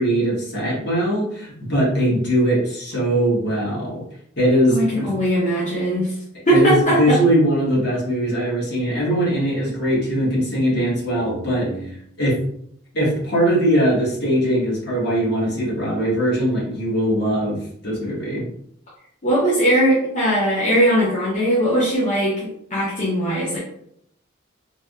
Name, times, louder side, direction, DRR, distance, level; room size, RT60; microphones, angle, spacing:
voice 1, 0.0-4.0 4.4-5.1 6.5-12.4 12.9-18.5, equal, 55° left, -4 dB, 1.1 m, -21 dB
voice 2, 4.7-6.1 6.5-7.2 19.2-23.6, right 1 dB, 35° left, -7 dB, 0.7 m, -19 dB
3.4 x 2.6 x 2.3 m, 0.69 s
head